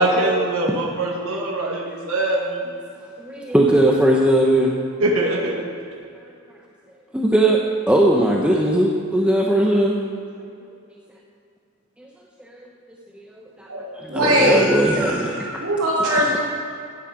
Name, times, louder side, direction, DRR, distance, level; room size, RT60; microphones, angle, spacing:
voice 1, 0.0-2.6 5.0-5.5, right 1 dB, 75° right, -2 dB, 1.9 m, -22 dB
voice 2, 3.2-4.7 7.1-7.6 7.9-9.9 12.0-12.1 12.5-12.7 13.1-13.7 13.9-15.3, right 1 dB, 5° right, -2 dB, 0.9 m, -19 dB
voice 3, 13.7-16.4, equal, 90° right, -10 dB, 3.3 m, -21 dB
15.0 x 9.8 x 5.1 m, 2.5 s
head